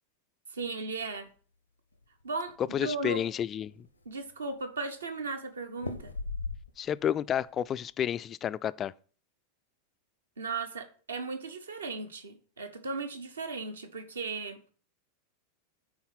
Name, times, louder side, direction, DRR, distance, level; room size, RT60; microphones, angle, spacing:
voice 1, 0.5-1.3 2.2-3.2 4.0-6.1 10.4-14.6, right 3 dB, 70° right, 1.1 m, -36 dB
sound 1, 1.9-2.8 3.3-3.4 3.6-4.3 5.8-7.0 7.4-7.8, left 3 dB, 85° left, 0.8 m, -39 dB
voice 2, 2.7-3.9 6.8-8.9, left 9 dB, 25° left, 0.3 m, -31 dB
9.6 x 4.1 x 5.7 m
figure-of-eight pair, 90°, 0 cm